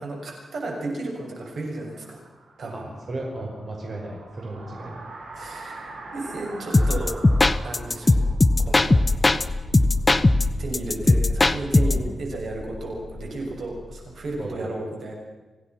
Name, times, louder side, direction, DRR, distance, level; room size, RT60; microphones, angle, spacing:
voice 1, 0.0-2.2 2.6-2.9 5.4-7.2 7.6-8.3 8.6-9.1 10.6-15.1, right 2 dB, 70° right, 0 dB, 6.7 m, -33 dB
sound 1, 1.3-10.2, right 2 dB, 90° right, 6.5 m, -43 dB
voice 2, 2.7-4.9 11.8-12.1 14.4-14.8, right 2 dB, 50° right, -1 dB, 5.7 m, -35 dB
sound 2, 6.7-9.4 9.7-12.1, left 2 dB, 20° left, 0.9 m, -19 dB
sound 3, 8.5-14.4, left 1 dB, 60° left, 6.5 m, -38 dB
26.5 x 17.0 x 6.0 m, 1.3 s
wide cardioid pair, 120°, 0 cm